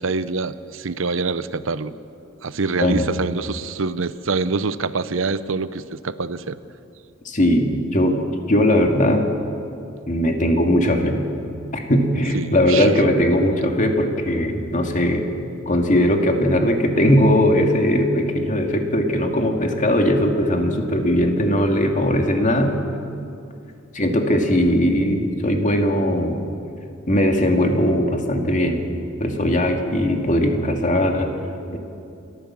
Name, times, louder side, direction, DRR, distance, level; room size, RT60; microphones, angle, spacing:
voice 1, 0.0-1.9 2.4-6.6 12.3-13.1, right 4 dB, 75° right, 14 dB, 0.7 m, -25 dB
voice 2, 7.3-8.2 8.5-9.3 10.1-11.2 11.7-15.2 15.7-22.7 23.9-26.4 27.1-28.8 29.2-31.3 31.7-31.8, left 1 dB, 40° left, 3 dB, 2.2 m, -19 dB
28.5 x 14.0 x 7.5 m, 2.6 s
head